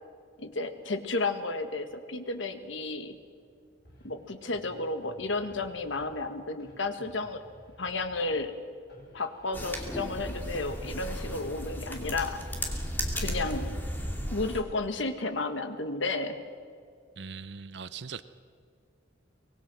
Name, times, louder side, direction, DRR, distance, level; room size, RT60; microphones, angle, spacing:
voice 1, 0.4-3.2 4.0-7.4 7.8-8.5 9.1-12.4 13.1-13.7 14.3-16.4, left 3 dB, 80° left, 8 dB, 1.7 m, -32 dB
sound 1, 3.8-6.3 6.6-8.6 8.9-12.3, equal, 55° left, 5.2 m, -55 dB
sound 2, 9.5-14.6, equal, 10° left, 2.5 m, -35 dB
voice 2, 17.2-18.2, right 5 dB, 65° right, 13 dB, 0.7 m, -40 dB
24.0 x 20.5 x 6.2 m, 2.2 s
head